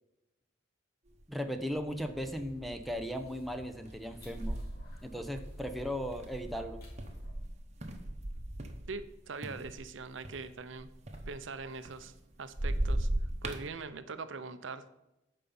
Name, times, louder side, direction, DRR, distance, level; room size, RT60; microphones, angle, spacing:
sound 1, 1.2-1.3 1.7-2.2 2.7-3.0 3.9-9.1 9.4-12.2 12.5-13.7, right 1 dB, 35° right, 1.1 m, -37 dB
voice 1, 1.3-4.6 5.0-6.8, equal, ahead, 6 dB, 0.6 m, -37 dB
sound 2, 1.9-7.3, equal, 50° left, 3.2 m, -50 dB
voice 2, 8.9-10.9 11.3-12.1 12.4-13.1 13.4-14.9, right 4 dB, 70° right, 12 dB, 0.7 m, -42 dB
9.1 x 5.6 x 7.0 m, 0.94 s
head